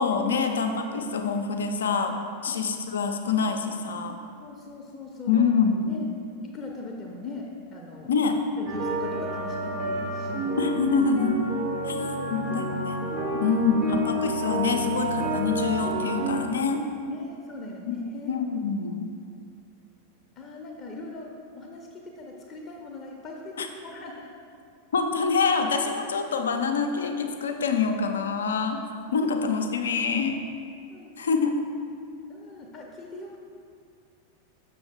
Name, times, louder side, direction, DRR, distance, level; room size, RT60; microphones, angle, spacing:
voice 1, 0.0-2.2 2.4-4.2 5.3-6.1 8.1-8.4 10.6-11.4 11.9-12.0 12.3-13.0 13.4-16.9 17.9-18.0 18.3-19.1 23.6-23.7 24.9-28.8 29.1-30.4 31.2-31.6, left 5 dB, 65° left, 5 dB, 0.5 m, -26 dB
voice 2, 4.4-5.4 5.9-6.1 6.5-8.1 8.6-10.6 11.7-12.8 13.3-14.1 17.1-18.4 20.4-21.3 21.5-24.3 29.2-29.3 30.9-31.1 32.3-33.4, left 2 dB, 25° left, 0 dB, 0.8 m, -40 dB
sound 1, 8.7-16.4, right 1 dB, 40° right, 1.1 m, -29 dB
6.9 x 6.1 x 3.5 m, 2.4 s
figure-of-eight pair, 90°, 0 cm